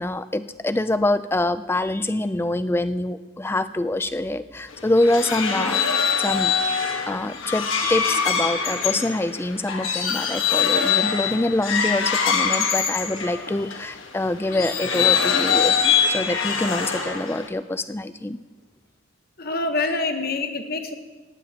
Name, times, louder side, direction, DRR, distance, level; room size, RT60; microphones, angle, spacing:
voice 1, 0.0-5.8 6.2-6.5 7.1-18.4, left 1 dB, 10° left, 12 dB, 0.3 m, -25 dB
sound 1, 4.7-13.8 14.5-17.5, left 6 dB, 75° left, 1.4 m, -23 dB
voice 2, 19.4-20.9, left 3 dB, 50° left, 6 dB, 1.1 m, -26 dB
18.5 x 15.5 x 2.9 m, 1.3 s
head